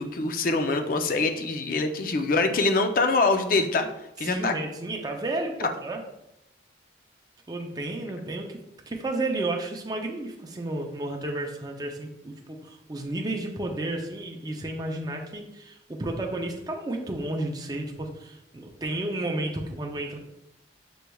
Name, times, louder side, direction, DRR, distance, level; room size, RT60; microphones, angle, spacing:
voice 1, 0.0-3.9 4.2-4.5, left 3 dB, 50° left, 6 dB, 0.4 m, -24 dB
voice 2, 4.2-6.0 7.5-20.2, right 2 dB, 20° right, 1 dB, 0.5 m, -32 dB
6.9 x 3.3 x 2.3 m, 0.87 s
head